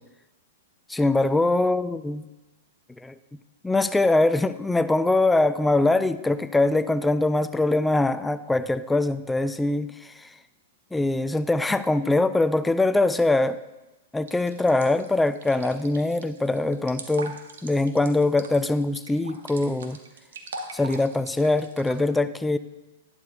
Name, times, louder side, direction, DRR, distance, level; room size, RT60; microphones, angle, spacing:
voice 1, 0.9-2.2 3.0-3.1 3.6-10.3 10.9-13.6 14.1-17.4 17.6-20.0 20.7-22.6, left 2 dB, 5° left, 13 dB, 0.4 m, -23 dB
sound 1, 14.3-22.0, right 4 dB, 75° right, 1.2 m, -41 dB
11.5 x 11.5 x 2.3 m, 1.0 s
hypercardioid pair, 120°, 0 cm